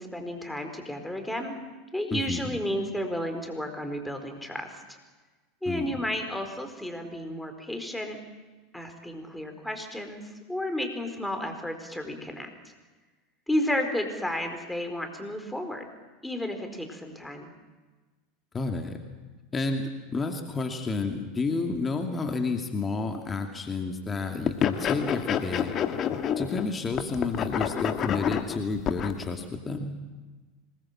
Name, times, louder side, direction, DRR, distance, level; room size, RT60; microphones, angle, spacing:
voice 1, 0.0-1.5 1.9-5.0 5.6-8.2 8.7-10.2 10.5-12.5 13.5-15.9 16.2-17.5, left 1 dB, 5° left, 5 dB, 4.4 m, -32 dB
voice 2, 2.1-2.5 5.7-6.0 18.5-19.0 19.5-25.7 26.4-29.9, left 3 dB, 20° left, 4 dB, 2.5 m, -30 dB
sound 1, 24.5-26.7 26.9-29.2, left 9 dB, 35° left, 1.7 m, -28 dB
25.5 x 20.0 x 7.5 m, 1.3 s
figure-of-eight pair, 80°, 0 cm